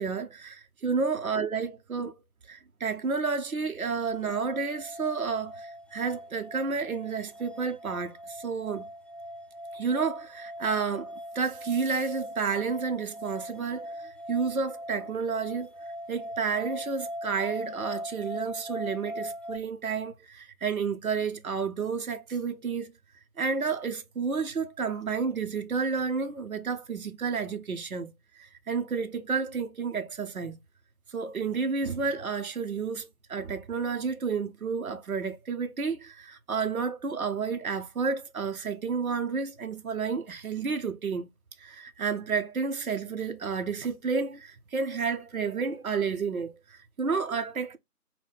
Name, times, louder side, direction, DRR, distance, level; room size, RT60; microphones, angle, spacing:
voice 1, 0.0-2.1 2.5-8.9 9.7-15.7 16.1-22.9 23.4-28.1 28.4-30.6 31.1-41.3 41.6-47.8, right 5 dB, 65° right, 0.7 m, -31 dB
sound 1, 4.0-19.6, equal, 5° left, 0.3 m, -41 dB
5.7 x 2.1 x 3.9 m
figure-of-eight pair, 180°, 47 cm